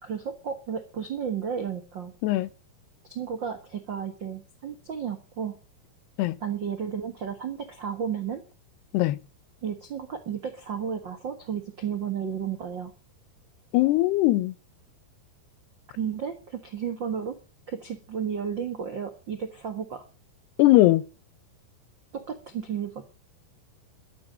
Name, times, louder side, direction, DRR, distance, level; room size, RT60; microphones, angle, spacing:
voice 1, 0.0-2.1 3.1-5.5 6.4-8.4 9.6-12.9 15.9-17.4 17.7-20.1 22.1-23.0, right 7 dB, 85° right, 1.0 m, -33 dB
voice 2, 13.7-14.5 20.6-21.1, left 17 dB, 80° left, 2.9 m, -20 dB
13.0 x 11.0 x 8.7 m
omnidirectional pair, 4.7 m